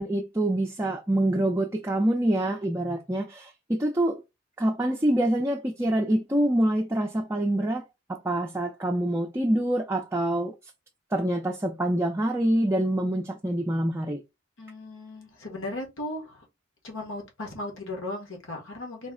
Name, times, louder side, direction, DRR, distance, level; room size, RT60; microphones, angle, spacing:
voice 1, 0.0-4.2 4.6-7.8 8.1-10.5 11.1-14.2, right 1 dB, 15° right, 0.4 m, -26 dB
voice 2, 14.6-16.4 16.8-19.1, left 1 dB, 80° left, 1.2 m, -36 dB
4.1 x 2.0 x 3.6 m
head